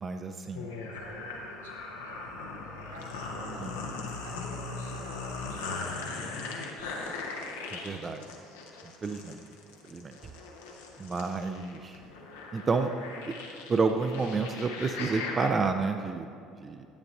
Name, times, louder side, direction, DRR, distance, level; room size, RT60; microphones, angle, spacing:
voice 1, 0.0-0.7 3.6-3.8 7.7-8.3 9.0-9.4 9.9-10.1 11.0-12.0 12.5-12.9 13.3-13.4 13.7-16.3 16.6-16.9, right 4 dB, 30° right, 6 dB, 0.4 m, -30 dB
sound 1, 0.5-15.5, left 3 dB, 70° left, 0.8 m, -39 dB
voice 2, 0.7-3.6 4.2-7.2, right 1 dB, 85° right, -8 dB, 1.9 m, -48 dB
10.0 x 9.0 x 2.6 m, 2.5 s
figure-of-eight pair, 60°, 0 cm